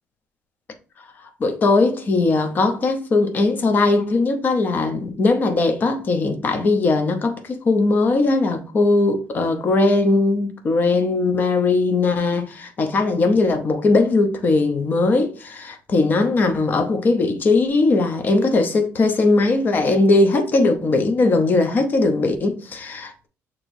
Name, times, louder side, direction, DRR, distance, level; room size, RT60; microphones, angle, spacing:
voice 1, 1.4-23.3, left 3 dB, 35° left, 0.7 m, -19 dB
6.3 x 3.0 x 2.6 m
cardioid pair, 150°, 6 cm